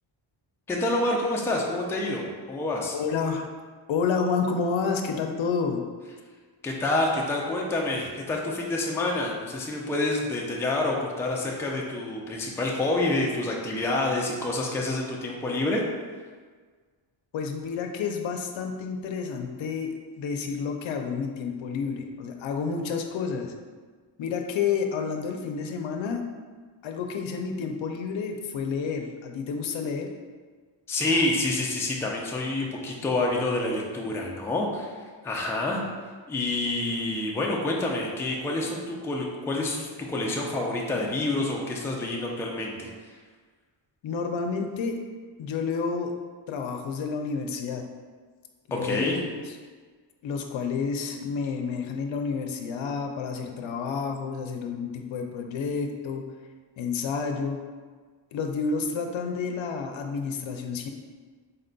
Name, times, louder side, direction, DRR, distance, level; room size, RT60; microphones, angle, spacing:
voice 1, 0.7-3.0 6.6-15.8 30.9-34.9 35.2-35.8 36.3-42.9 48.7-49.2, left 2 dB, 5° left, -2 dB, 0.3 m, -28 dB
voice 2, 2.9-3.5 3.9-5.8 17.3-23.5 24.2-26.2 26.8-30.1 44.0-45.0 45.4-46.1 46.5-47.8 48.7-49.5 50.2-56.2 56.8-57.6 58.3-60.9, left 5 dB, 75° left, 4 dB, 0.6 m, -30 dB
4.2 x 2.2 x 3.8 m, 1.5 s
wide cardioid pair, 150°, 46 cm